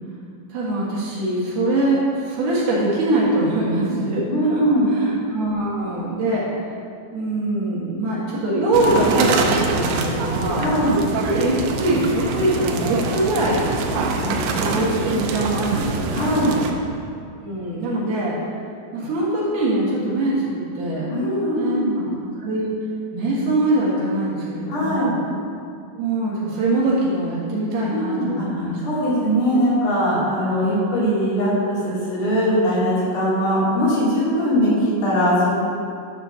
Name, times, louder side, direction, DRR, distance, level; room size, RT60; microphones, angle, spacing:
voice 1, 0.5-4.2 4.5-6.4 7.1-10.7 11.2-13.7 14.2-16.2 17.4-18.4 18.9-21.1 21.6-22.1 22.4-22.7 23.1-25.1 26.0-28.8, right 1 dB, 65° right, -7 dB, 3.3 m, -23 dB
voice 2, 4.3-4.9 10.6-10.9 15.7-15.8 16.1-16.6 21.1-21.9 24.7-25.1 27.9-35.5, equal, 65° left, -8 dB, 4.4 m, -21 dB
sound 1, 8.7-16.7, right 3 dB, 80° right, 2.5 m, -24 dB
11.5 x 4.4 x 6.4 m, 2.4 s
omnidirectional pair, 5.3 m